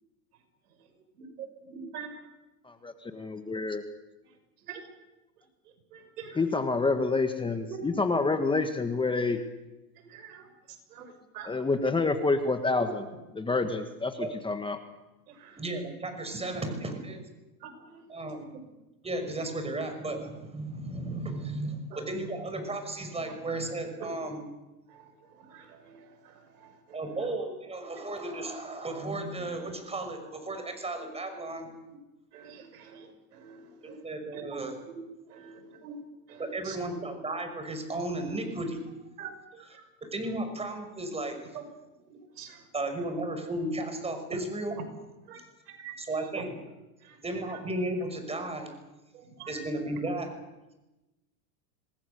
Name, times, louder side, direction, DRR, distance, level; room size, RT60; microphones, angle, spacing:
voice 1, 1.2-2.1 4.7-4.8 5.9-6.4 7.7-7.8 10.1-10.5 10.9-11.5 15.3-15.6 17.6-18.0 24.0-24.1 24.9-25.1 25.4-27.1 32.3-33.1 33.3-34.0 34.3-34.4 35.3-36.0 36.3-36.8 39.2-39.8 42.1-42.6 45.3-45.4 45.7-45.9 47.0-47.2 49.1-49.6, right 7 dB, 80° right, 6 dB, 6.2 m, -46 dB
voice 2, 2.8-3.8 6.3-9.4 11.4-13.1 13.3-14.8, left 3 dB, 10° left, 7 dB, 1.5 m, -28 dB
voice 3, 15.6-17.2 18.1-18.5 19.0-24.4 26.9-31.7 33.8-34.8 36.4-38.8 40.1-41.4 42.7-44.8 46.0-46.5 47.2-48.7 49.5-50.3, right 2 dB, 15° right, 6 dB, 5.7 m, -34 dB
27.0 x 20.0 x 6.9 m, 1.0 s
hypercardioid pair, 115°, 45 cm